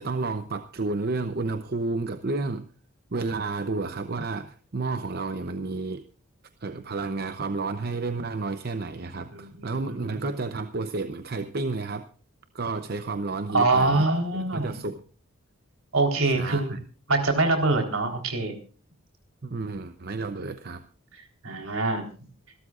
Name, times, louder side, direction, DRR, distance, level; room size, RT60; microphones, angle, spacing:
voice 1, 0.0-2.7 3.1-6.0 6.6-12.1 12.5-14.1 14.3-15.0 16.3-16.8 19.4-20.8, right 3 dB, 45° right, 9 dB, 0.8 m, -31 dB
voice 2, 9.3-10.3 13.5-14.8 15.9-16.8 17.1-18.5 21.4-22.1, right 2 dB, 70° right, 4 dB, 4.0 m, -24 dB
27.0 x 13.0 x 2.5 m, 0.39 s
head